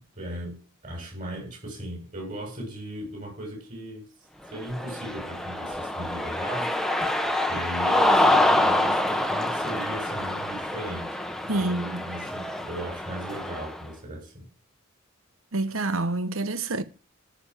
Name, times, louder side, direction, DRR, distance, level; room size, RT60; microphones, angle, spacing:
voice 1, 0.1-4.1 4.5-6.8 7.5-14.5, right 1 dB, 40° right, 7.2 m, -38 dB
Cheering, 4.6-13.8, left 1 dB, ahead, 1.1 m, -26 dB
voice 2, 11.5-12.0 15.5-16.8, right 2 dB, 75° right, 1.3 m, -27 dB
13.5 x 7.0 x 8.3 m
head